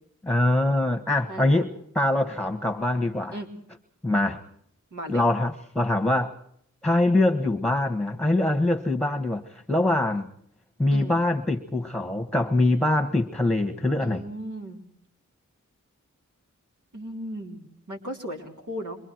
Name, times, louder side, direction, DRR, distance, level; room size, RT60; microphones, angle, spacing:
voice 1, 0.2-3.4 4.0-4.4 5.1-6.3 6.8-10.3 10.8-14.2, left 1 dB, 5° left, 5 dB, 1.4 m, -23 dB
voice 2, 1.3-1.6 3.3-3.5 4.9-5.2 10.9-11.2 14.0-14.8 16.9-19.0, equal, 75° right, 1 dB, 3.7 m, -36 dB
27.0 x 24.0 x 4.6 m, 0.66 s
wide cardioid pair, 110°, 30 cm